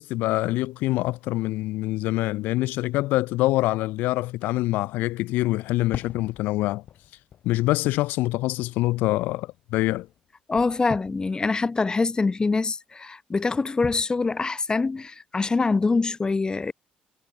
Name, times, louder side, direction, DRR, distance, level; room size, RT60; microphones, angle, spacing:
voice 1, 0.0-6.8 7.4-10.1, left 18 dB, 90° left, 0.9 m, -25 dB
Fireworks, 5.9-10.3 10.5-11.3, left 10 dB, 65° left, 7.7 m, -43 dB
voice 2, 10.5-16.7, left 4 dB, 25° left, 0.8 m, -24 dB
cardioid pair, 75°, 3 cm